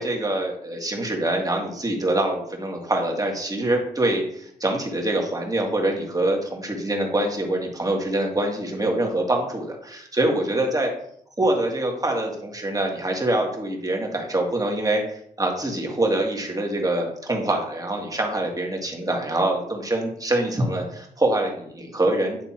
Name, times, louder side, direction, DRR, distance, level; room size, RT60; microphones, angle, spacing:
voice 1, 0.0-10.9 11.4-22.4, right 1 dB, 20° right, 1 dB, 2.1 m, -25 dB
9.2 x 3.3 x 4.5 m, 0.69 s
supercardioid pair, 55°, 16 cm